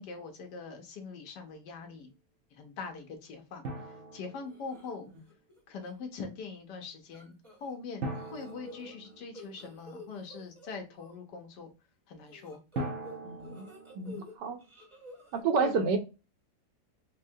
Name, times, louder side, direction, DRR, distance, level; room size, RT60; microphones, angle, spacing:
voice 1, 0.0-2.1 2.6-5.1 5.7-11.7 12.1-12.6 15.6-15.8, left 4 dB, 75° left, 1.3 m, -43 dB
Drum, 3.6-5.1 8.0-9.8 12.8-14.4, right 2 dB, 60° right, 0.9 m, -41 dB
sound 1, 4.5-4.9 5.3-5.6 5.8-5.9 7.1-7.8 8.1-11.2 12.3-14.3 14.6-15.4, left 1 dB, 20° right, 0.8 m, -50 dB
voice 2, 13.2-13.6 14.0-14.6 15.3-16.0, right 5 dB, 80° right, 1.3 m, -29 dB
4.5 x 2.1 x 2.6 m
omnidirectional pair, 1.9 m